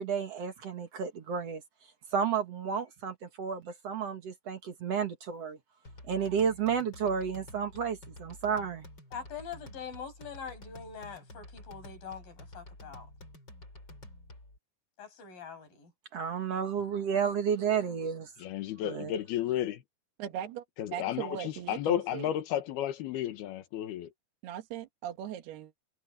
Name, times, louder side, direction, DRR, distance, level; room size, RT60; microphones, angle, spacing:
voice 1, 0.0-1.6 2.1-5.6 6.1-8.9 16.1-18.3 18.9-19.1, right 7 dB, 55° right, 2.0 m, -31 dB
sound 1, 5.8-14.6, left 1 dB, 25° left, 8.2 m, -50 dB
voice 2, 9.1-13.1 15.0-15.9, left 6 dB, 60° left, 8.8 m, -43 dB
voice 3, 18.4-19.8 20.8-24.1, left 11 dB, 75° left, 3.3 m, -32 dB
voice 4, 20.2-20.6 20.9-22.3 24.4-25.7, right 10 dB, 80° right, 3.5 m, -39 dB
omnidirectional pair, 4.5 m